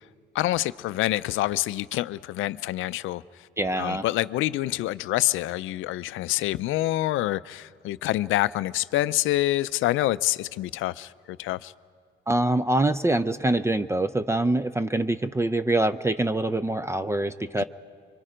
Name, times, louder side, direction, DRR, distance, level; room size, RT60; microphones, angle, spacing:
voice 1, 0.3-3.2 3.8-11.7 17.6-17.7, left 16 dB, 85° left, 0.5 m, -26 dB
voice 2, 3.6-4.0 12.3-17.6, right 2 dB, 15° right, 0.5 m, -24 dB
25.0 x 24.0 x 5.0 m
cardioid pair, 90°, 20 cm